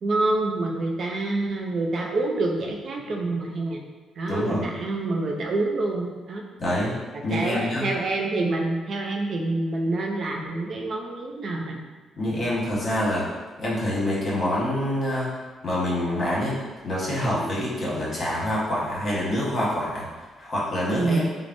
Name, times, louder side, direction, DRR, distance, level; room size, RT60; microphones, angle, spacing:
voice 1, 0.0-3.8 4.2-6.4 7.3-11.8 17.4-17.5 20.9-21.3, right 2 dB, 55° right, 0 dB, 0.4 m, -27 dB
voice 2, 4.3-4.7 6.6-6.9 7.2-7.9 12.2-13.3 13.6-15.3 15.6-16.6 16.8-20.1 20.4-21.2, left 1 dB, 40° left, -7 dB, 1.1 m, -26 dB
3.3 x 2.0 x 2.5 m, 1.3 s
cardioid pair, 90°, 0 cm